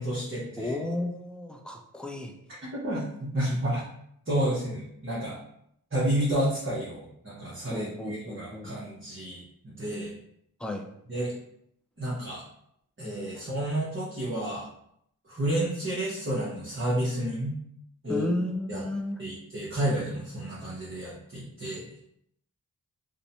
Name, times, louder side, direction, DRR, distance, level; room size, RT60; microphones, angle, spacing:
voice 1, 0.0-0.7 2.7-3.8 4.3-5.4 5.9-10.1 11.1-11.3 12.0-12.4 13.0-14.7 15.3-17.5 18.0-18.2 18.7-18.8 19.2-21.8, right 1 dB, 35° right, -8 dB, 0.8 m, -30 dB
voice 2, 0.6-2.3 7.7-8.9 10.6-10.9 13.3-13.5 18.1-19.8, left 1 dB, 5° left, 2 dB, 0.3 m, -34 dB
2.6 x 2.1 x 2.7 m, 0.73 s
wide cardioid pair, 45°, 37 cm